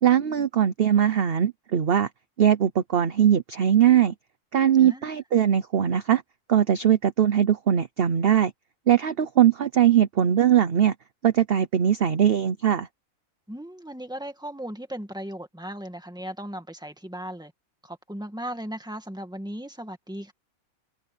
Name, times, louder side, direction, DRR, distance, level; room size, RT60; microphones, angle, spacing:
voice 1, 0.0-2.1 2.4-4.1 4.5-6.2 6.5-8.5 8.9-10.9 11.2-12.9, right 9 dB, 50° right, 0.9 m, -20 dB
voice 2, 4.8-5.2 13.5-17.5 17.8-20.3, right 1 dB, 5° right, 2.1 m, -37 dB
omnidirectional pair, 1.4 m